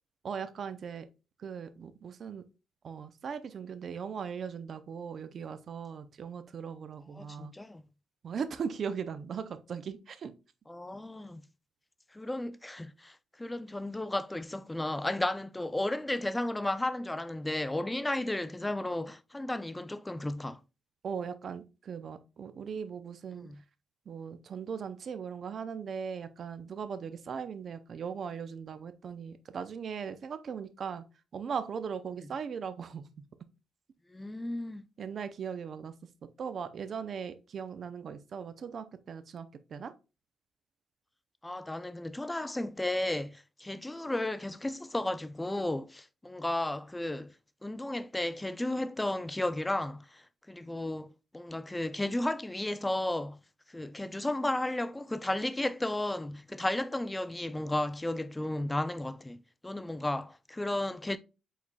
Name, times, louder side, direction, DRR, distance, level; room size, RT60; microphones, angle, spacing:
voice 1, 0.2-1.1 1.4-2.4 2.8-7.5 8.2-10.3 21.0-23.5 24.1-31.0 31.3-33.2 35.0-35.9 36.4-39.9, right 6 dB, 55° right, 0.5 m, -39 dB
voice 2, 7.2-7.8 10.7-11.4 12.1-20.6 23.3-23.6 32.2-32.3 34.1-34.9 41.4-47.3 47.6-53.4 53.7-61.2, left 1 dB, 10° left, 0.4 m, -34 dB
4.9 x 4.1 x 2.2 m
cardioid pair, 90°, 0 cm